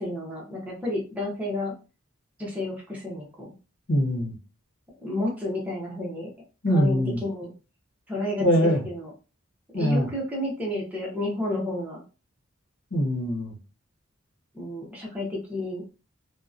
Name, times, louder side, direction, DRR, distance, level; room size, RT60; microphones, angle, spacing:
voice 1, 0.0-1.7 2.4-3.5 5.0-6.3 6.7-7.5 8.1-9.1 9.7-12.0 14.5-15.8, left 1 dB, 5° right, -3 dB, 0.7 m, -31 dB
voice 2, 3.9-4.3 6.6-7.2 8.4-8.8 9.7-10.1 12.9-13.5, equal, 70° left, -1 dB, 0.9 m, -23 dB
2.7 x 2.2 x 2.4 m, 0.33 s
head